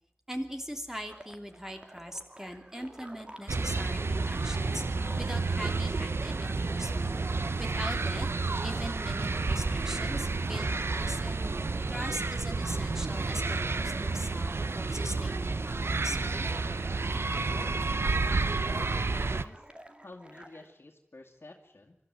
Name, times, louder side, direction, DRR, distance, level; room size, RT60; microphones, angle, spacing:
voice 1, 0.3-7.2 7.6-8.3 8.6-11.4 11.9-16.5, equal, 10° right, 4 dB, 3.0 m, -41 dB
sound 1, 1.1-20.7, right 1 dB, 25° right, 2.1 m, -51 dB
sound 2, 3.5-19.4, right 3 dB, 85° right, 0.7 m, -30 dB
voice 2, 17.4-17.9 18.6-19.7 20.0-22.0, left 2 dB, 65° left, -1 dB, 2.2 m, -48 dB
25.0 x 13.5 x 9.4 m, 0.81 s
wide cardioid pair, 55°, 4 cm